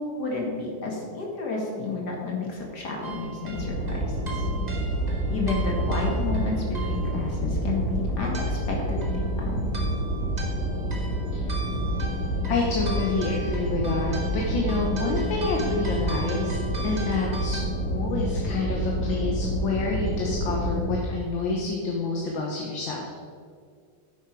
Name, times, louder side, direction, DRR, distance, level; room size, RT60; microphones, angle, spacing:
voice 1, 0.0-4.4 5.3-9.8, left 3 dB, 50° left, -1 dB, 2.4 m, -31 dB
sound 1, 3.0-17.6, right 3 dB, 25° right, 1.2 m, -41 dB
sound 2, 3.5-21.0, equal, 35° left, 2.2 m, -28 dB
voice 2, 12.5-23.2, left 3 dB, 70° left, -1 dB, 1.9 m, -28 dB
10.0 x 8.2 x 4.7 m, 2.2 s
omnidirectional pair, 2.3 m